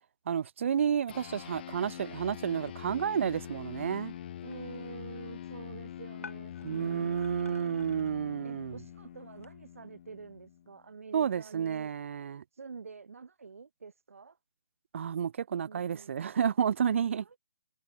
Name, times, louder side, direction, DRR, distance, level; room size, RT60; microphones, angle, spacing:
voice 1, 0.3-4.1 6.6-8.8 11.1-12.4 14.9-17.4, right 8 dB, 65° right, 0.5 m, -31 dB
sound 1, 1.1-10.8, left 11 dB, 45° left, 1.2 m, -44 dB
sound 2, 4.4-9.5, left 4 dB, 90° left, 5.2 m, -54 dB
voice 2, 4.4-7.7 8.4-11.9 12.5-14.4 15.6-16.1 17.2-17.4, right 5 dB, 85° right, 6.4 m, -48 dB
hypercardioid pair, 150°, 7 cm